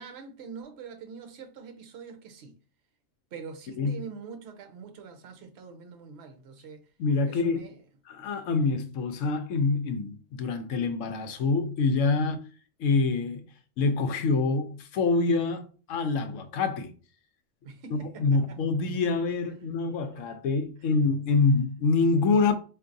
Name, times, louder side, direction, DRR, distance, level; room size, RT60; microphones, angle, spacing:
voice 1, 0.0-2.6 3.3-6.8 7.2-7.8 12.2-12.3 17.6-18.6, right 5 dB, 60° right, 0.9 m, -44 dB
voice 2, 7.0-7.6 8.1-12.4 12.8-13.4 13.8-16.9 17.9-22.5, left 4 dB, 80° left, 0.9 m, -26 dB
4.5 x 2.6 x 2.5 m
omnidirectional pair, 1.3 m